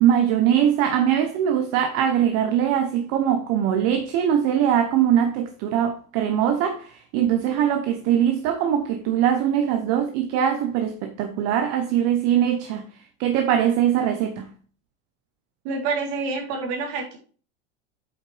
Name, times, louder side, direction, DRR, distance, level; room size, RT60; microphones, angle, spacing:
voice 1, 0.0-12.8 13.2-14.5, right 9 dB, 50° right, 0.9 m, -22 dB
voice 2, 15.6-17.2, right 4 dB, 65° right, 3.4 m, -27 dB
8.3 x 5.6 x 3.3 m
supercardioid pair, 145°, 33 cm